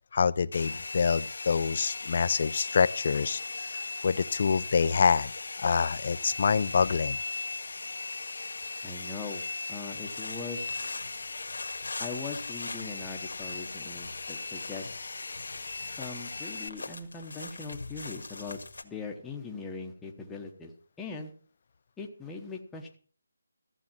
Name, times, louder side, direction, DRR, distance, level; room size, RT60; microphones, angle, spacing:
voice 1, 0.1-7.2, left 5 dB, 40° left, 16 dB, 0.6 m, -26 dB
Domestic sounds home sounds, 0.5-16.7, left 3 dB, 60° left, 0.9 m, -38 dB
voice 2, 8.8-9.4 9.7-10.9 12.0-14.9 15.9-20.7 21.0-21.3 22.0-23.0, left 4 dB, 5° left, 0 dB, 1.0 m, -40 dB
sound 1, 10.0-18.8, left 3 dB, 80° left, 1.7 m, -43 dB
14.5 x 8.5 x 5.9 m, 0.42 s
hypercardioid pair, 175°, 0 cm